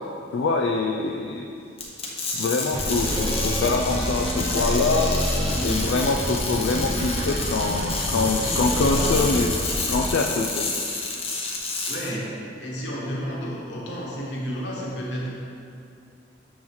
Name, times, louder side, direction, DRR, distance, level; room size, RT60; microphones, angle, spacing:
voice 1, 0.3-1.4 2.4-5.1 5.6-10.6, left 3 dB, 90° left, 1 dB, 0.4 m, -24 dB
sound 1, 1.8-12.1, left 3 dB, 30° left, 0.8 m, -30 dB
sound 2, 2.7-10.1, equal, 25° right, 0.7 m, -27 dB
voice 2, 11.9-12.3 12.6-15.3, equal, 75° left, -4 dB, 1.3 m, -31 dB
7.1 x 3.1 x 5.5 m, 2.4 s
head